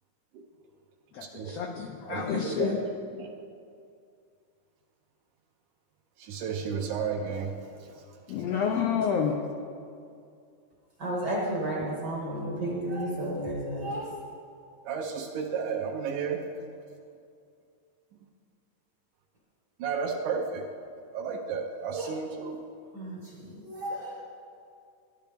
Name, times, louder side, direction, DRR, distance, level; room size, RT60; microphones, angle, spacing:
voice 1, 1.1-2.8 8.3-9.4, left 7 dB, 90° left, 1.4 m, -29 dB
voice 2, 2.1-2.8 3.2-3.3 6.2-8.1 14.9-16.4 19.8-20.7 21.1-22.6, right 6 dB, 75° right, 2.2 m, -33 dB
voice 3, 11.0-14.1 19.9-20.1 21.9-22.2 22.9-24.2, right 1 dB, 50° right, 1.3 m, -33 dB
15.0 x 10.0 x 3.5 m
omnidirectional pair, 3.7 m